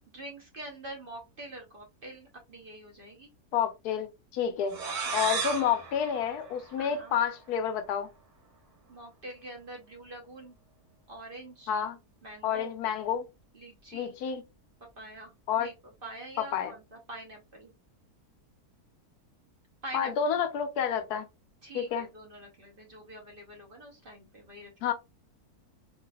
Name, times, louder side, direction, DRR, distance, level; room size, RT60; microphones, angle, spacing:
voice 1, 0.1-3.3 5.0-5.4 6.8-7.1 8.9-10.6 11.1-11.7 12.2-12.7 13.5-14.1 14.8-15.3 15.6-15.7 16.0-17.7 19.8-20.3 21.6-24.9, right 1 dB, 40° right, 0.9 m, -45 dB
voice 2, 3.5-4.8 5.1-8.1 11.7-12.0 12.4-13.2 13.9-14.4 15.5-15.7 16.5-16.7 19.9-21.3 21.7-22.1 24.8-24.9, left 8 dB, 85° left, 1.2 m, -29 dB
sound 1, 4.7-7.3, right 5 dB, 75° right, 1.6 m, -35 dB
4.1 x 2.5 x 2.3 m
omnidirectional pair, 1.6 m